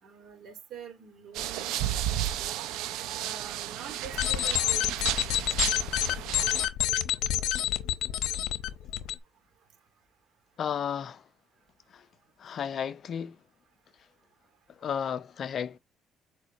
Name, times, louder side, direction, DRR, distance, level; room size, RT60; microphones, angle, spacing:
voice 1, 0.0-2.6 3.2-5.4, right 7 dB, 60° right, 2.6 m, -46 dB
sound 1, 1.3-6.7, right 12 dB, 90° right, 0.7 m, -33 dB
sound 2, 4.0-9.1, left 13 dB, 80° left, 0.8 m, -28 dB
voice 2, 10.6-11.3 11.9-12.1 12.4-13.4 14.7-15.8, left 8 dB, 55° left, 0.6 m, -33 dB
6.6 x 4.8 x 3.0 m
cardioid pair, 95°, 0 cm